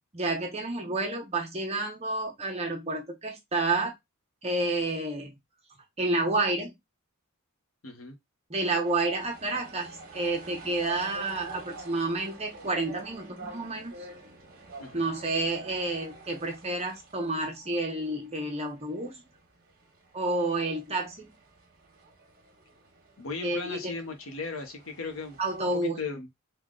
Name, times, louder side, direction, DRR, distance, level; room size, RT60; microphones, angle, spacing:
voice 1, 0.1-3.9 4.4-5.3 6.0-6.7 8.5-14.1 14.9-19.2 20.1-21.3 23.4-23.9 25.4-26.0, right 2 dB, 30° right, 0.8 m, -30 dB
voice 2, 7.8-8.2 14.8-15.1 23.2-25.4 25.7-26.3, left 4 dB, 65° left, 0.8 m, -37 dB
sound 1, 8.8-25.8, right 2 dB, 45° right, 1.2 m, -48 dB
3.5 x 2.3 x 3.7 m
head